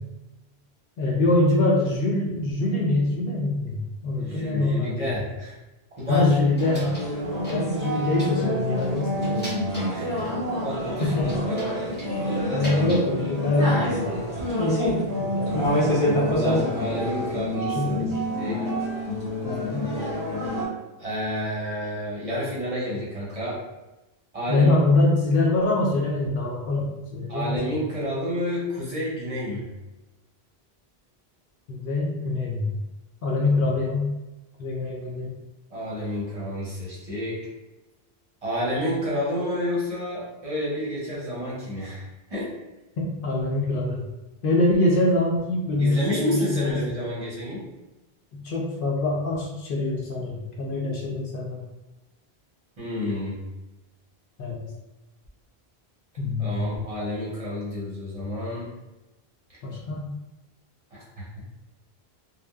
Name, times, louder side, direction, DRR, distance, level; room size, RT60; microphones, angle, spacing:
voice 1, 1.0-5.1 6.1-6.9 7.5-9.5 11.0-11.3 12.1-14.2 15.2-15.5 15.8-16.7 17.7-18.1 19.4-19.9 24.5-27.6 31.7-32.8 33.2-34.1 34.6-35.3 43.0-44.0 44.4-46.8 48.3-51.6 54.4-54.6 56.2-56.8 59.6-60.1, left 2 dB, 65° left, -2 dB, 0.7 m, -24 dB
voice 2, 4.1-5.5 6.0-6.3 9.9-11.7 16.3-18.6 21.0-23.6 24.3-24.7 27.3-29.6 35.7-37.5 38.4-42.5 45.8-47.6 52.8-53.4 56.4-58.7 60.9-61.4, equal, 40° right, -7 dB, 0.7 m, -30 dB
sound 1, 6.0-7.2 7.4-8.4 8.8-10.3 11.0-13.1 13.4-13.9, equal, 10° left, 0.7 m, -41 dB
sound 2, 6.6-20.7, equal, 40° left, 1.4 m, -27 dB
2.8 x 2.0 x 2.3 m, 1.0 s
omnidirectional pair, 1.0 m